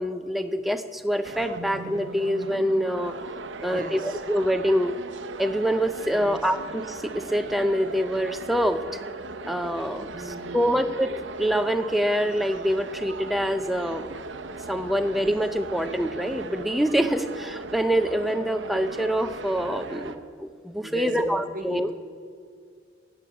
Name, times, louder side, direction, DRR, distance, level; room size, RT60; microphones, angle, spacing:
voice 1, 0.0-3.1 3.6-4.9 5.4-8.8 9.5-10.1 10.5-14.1 14.7-20.1 20.4-21.9, equal, ahead, 9 dB, 0.5 m, -25 dB
sound 1, 1.2-20.2, right 3 dB, 80° right, 0.8 m, -38 dB
voice 2, 3.5-4.2 6.0-6.5 10.1-10.8 19.8-20.1 20.8-21.9, right 1 dB, 45° right, 6 dB, 1.4 m, -38 dB
17.5 x 7.0 x 8.4 m, 2.1 s
head